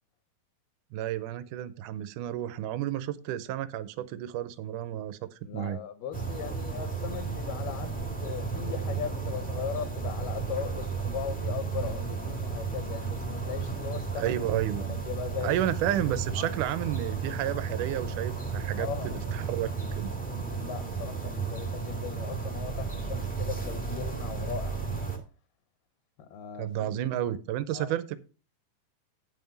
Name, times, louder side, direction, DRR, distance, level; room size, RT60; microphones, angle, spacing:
voice 1, 0.9-5.8 14.1-15.0 15.4-20.1 26.6-28.2, right 12 dB, 80° right, 1.9 m, -31 dB
voice 2, 5.4-14.3 14.8-15.6 16.4-16.5 18.7-19.1 20.6-24.8 26.3-27.3 27.7-27.9, left 8 dB, 75° left, 2.3 m, -38 dB
sound 1, 6.1-25.2, right 5 dB, 5° left, 0.6 m, -33 dB
9.3 x 5.8 x 5.3 m
omnidirectional pair, 4.1 m